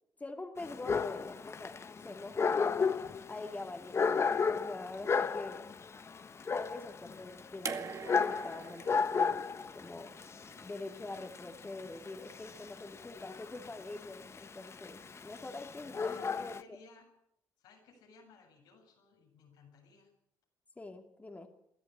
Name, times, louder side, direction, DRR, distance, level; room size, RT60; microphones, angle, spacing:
voice 1, 0.2-1.7 2.0-2.5 3.3-5.6 6.5-9.4 9.7-10.1 10.6-16.8 20.8-21.5, left 2 dB, 20° left, 4 dB, 2.6 m, -45 dB
Dog, 0.6-16.6, left 5 dB, 40° left, 1.1 m, -34 dB
sound 1, 7.6-10.8 12.0-12.1, right 6 dB, 50° right, 2.1 m, -44 dB
voice 2, 16.0-17.1 17.6-20.1, left 4 dB, 85° left, 0 dB, 7.9 m, -59 dB
22.5 x 14.0 x 8.9 m, 0.76 s
cardioid pair, 75°, 7 cm